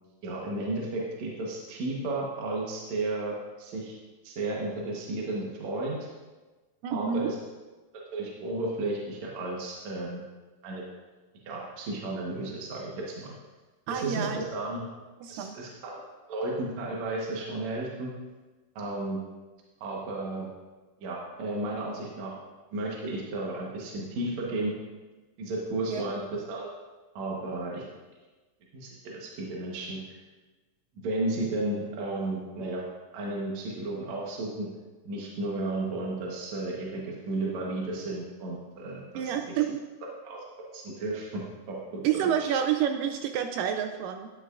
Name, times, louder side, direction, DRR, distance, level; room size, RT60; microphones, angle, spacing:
voice 1, 0.2-4.0 4.2-6.0 6.9-7.4 8.1-10.2 10.6-10.8 11.4-13.3 13.9-14.8 15.3-16.0 16.3-18.1 18.8-19.2 19.8-20.5 21.0-22.3 22.7-24.7 25.4-26.2 26.5-26.7 27.2-27.8 28.7-30.0 31.0-32.8 33.1-34.7 35.1-39.3 40.2-40.4 40.7-41.4 41.7-42.5, right 2 dB, 60° right, -3 dB, 2.3 m, -33 dB
voice 2, 6.8-7.3 13.9-14.4 15.2-15.5 25.9-26.1 39.1-39.8 42.0-44.3, right 9 dB, 80° right, 6 dB, 2.1 m, -28 dB
11.0 x 10.5 x 2.5 m, 1.2 s
omnidirectional pair, 3.9 m